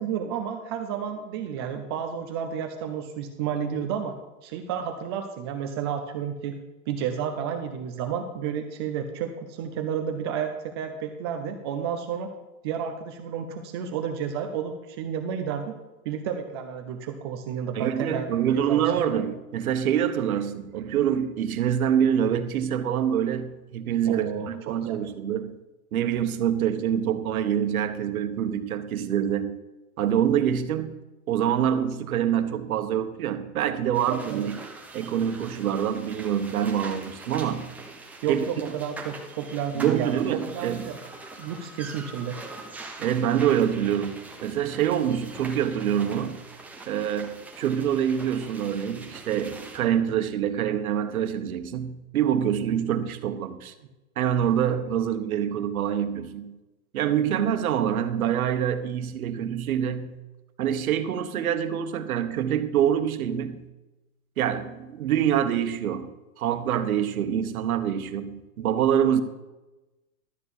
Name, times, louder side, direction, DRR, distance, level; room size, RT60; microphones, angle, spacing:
voice 1, 0.0-4.1 4.4-6.6 6.9-12.3 12.6-15.7 16.1-18.8 19.1-19.2 24.0-25.0 34.1-34.5 38.2-40.1 40.5-41.0 41.4-42.3, right 8 dB, 20° right, 5 dB, 0.4 m, -31 dB
voice 2, 17.7-25.6 25.9-29.6 30.0-31.0 31.3-34.6 34.9-37.7 38.3-38.4 39.7-40.9 43.0-46.4 46.9-53.7 54.2-56.6 56.9-60.2 60.6-63.7 64.4-66.1 66.4-69.2, right 9 dB, 80° right, 9 dB, 1.3 m, -26 dB
sound 1, 33.9-49.8, right 3 dB, 5° right, 0.8 m, -43 dB
12.5 x 4.5 x 8.5 m, 1.1 s
supercardioid pair, 155°, 42 cm